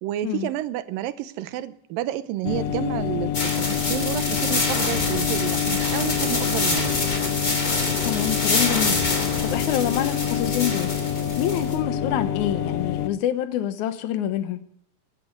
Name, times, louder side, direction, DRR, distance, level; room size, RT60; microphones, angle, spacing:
voice 1, 0.0-7.0, right 13 dB, 90° right, 2.5 m, -30 dB
sound 1, 2.4-13.1, left 11 dB, 90° left, 1.4 m, -27 dB
sound 2, 3.3-11.7, left 2 dB, 25° left, 3.3 m, -26 dB
Brass instrument, 6.0-12.9, right 2 dB, 40° right, 1.6 m, -38 dB
voice 2, 8.0-14.6, left 11 dB, 70° left, 2.3 m, -27 dB
15.5 x 10.5 x 6.5 m
omnidirectional pair, 4.0 m